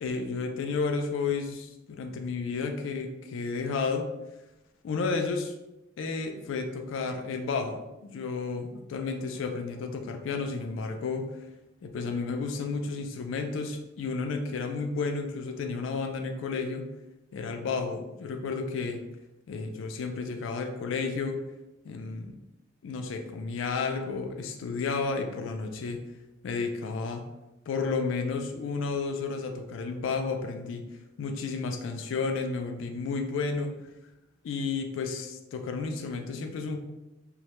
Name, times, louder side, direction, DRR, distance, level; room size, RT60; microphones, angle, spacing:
voice 1, 0.0-4.1 4.8-5.5 6.0-11.3 11.8-16.8 17.3-19.0 19.5-21.4 21.8-22.4 22.8-26.0 26.4-27.3 27.7-30.8 31.2-33.7 34.4-36.8, left 4 dB, 70° left, 5 dB, 0.3 m, -32 dB
2.0 x 2.0 x 2.9 m, 1.0 s
head